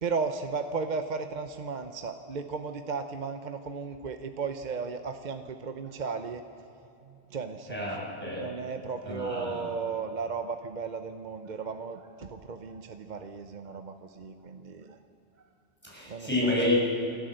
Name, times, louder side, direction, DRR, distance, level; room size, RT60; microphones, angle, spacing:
voice 1, 0.0-6.4 7.3-7.9 8.4-15.0 16.1-16.6, right 5 dB, 50° right, 7 dB, 0.8 m, -35 dB
voice 2, 7.7-8.5 9.0-9.7 15.8-16.7, left 1 dB, 10° left, -6 dB, 7.0 m, -29 dB
28.0 x 13.0 x 7.8 m, 2.9 s
omnidirectional pair, 1.1 m